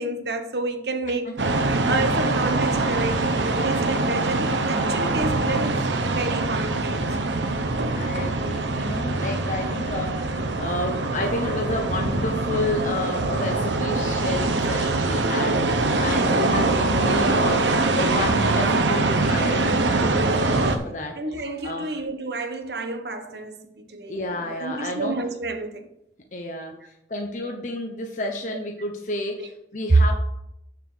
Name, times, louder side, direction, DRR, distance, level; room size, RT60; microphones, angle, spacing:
voice 1, 0.0-1.4 1.8-7.1 15.9-16.2 21.2-23.6 23.9-24.1 24.6-25.8 29.9-30.0, right 2 dB, 65° right, 6 dB, 1.2 m, -29 dB
sound 1, 1.4-20.8, right 2 dB, 90° right, 1.0 m, -23 dB
voice 2, 7.9-22.0 24.1-25.2 26.3-30.1, left 2 dB, 45° left, 3 dB, 0.8 m, -31 dB
6.9 x 6.7 x 6.2 m, 0.81 s
head